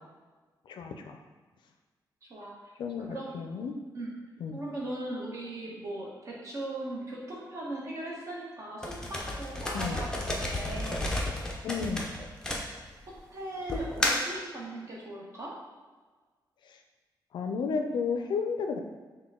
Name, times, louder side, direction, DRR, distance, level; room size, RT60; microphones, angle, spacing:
voice 1, 0.7-1.2 2.8-3.7 4.4-4.6 9.7-10.0 11.6-12.1 16.7-16.8 17.3-18.8, left 5 dB, 80° left, 5 dB, 0.4 m, -32 dB
voice 2, 2.3-2.7 3.1-3.3 3.9-4.1 4.5-11.1 12.7-12.8 13.3-15.5, right 1 dB, 40° right, -4 dB, 1.0 m, -39 dB
sound 1, 8.8-13.1 13.7-14.4, left 1 dB, 10° left, 0.5 m, -32 dB
5.7 x 2.2 x 3.6 m, 1.4 s
wide cardioid pair, 175°, 8 cm